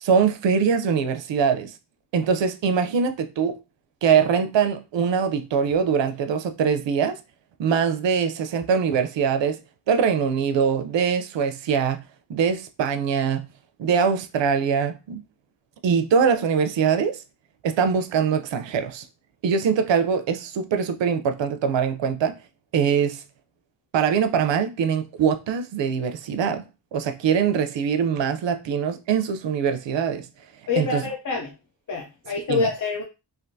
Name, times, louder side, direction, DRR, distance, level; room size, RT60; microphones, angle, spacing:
voice 1, 0.0-1.7 2.1-3.6 4.0-7.2 7.6-9.6 9.9-12.0 12.3-13.5 13.8-15.2 15.8-17.2 17.6-19.1 19.4-22.3 22.7-23.2 23.9-26.6 26.9-30.3 30.8-31.0 32.5-32.7, right 6 dB, 90° right, 0.6 m, -22 dB
voice 2, 30.7-31.5 31.9-33.0, left 5 dB, 45° left, 0.6 m, -26 dB
3.4 x 2.5 x 2.6 m
wide cardioid pair, 145°, 43 cm